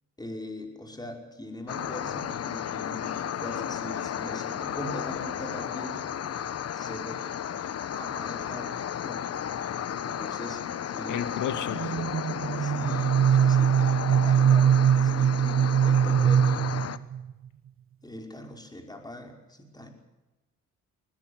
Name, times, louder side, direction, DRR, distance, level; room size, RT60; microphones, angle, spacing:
voice 1, 0.2-6.0 6.7-7.2 7.9-8.8 9.0-9.2 10.0-10.6 10.9-11.3 12.6-16.8 18.0-19.9, left 1 dB, 15° left, 4 dB, 5.4 m, -41 dB
sound 1, 1.7-17.0, left 9 dB, 55° left, 1.2 m, -33 dB
voice 2, 11.1-12.1, left 9 dB, 80° left, 11 dB, 2.2 m, -33 dB
sound 2, 11.7-17.3, right 9 dB, 45° right, 0.8 m, -22 dB
21.0 x 19.0 x 8.2 m, 1.0 s
cardioid pair, 90°, 30 cm